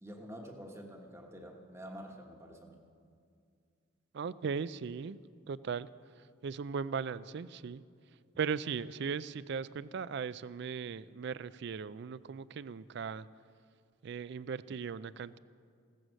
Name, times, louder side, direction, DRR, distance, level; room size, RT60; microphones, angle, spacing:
voice 1, 0.0-2.8, equal, 15° right, 2 dB, 1.1 m, -48 dB
voice 2, 4.1-5.2 5.5-5.9 6.2-7.8 8.4-13.3 14.0-15.4, right 6 dB, 50° right, 17 dB, 0.3 m, -38 dB
16.0 x 14.5 x 6.3 m, 2.3 s
head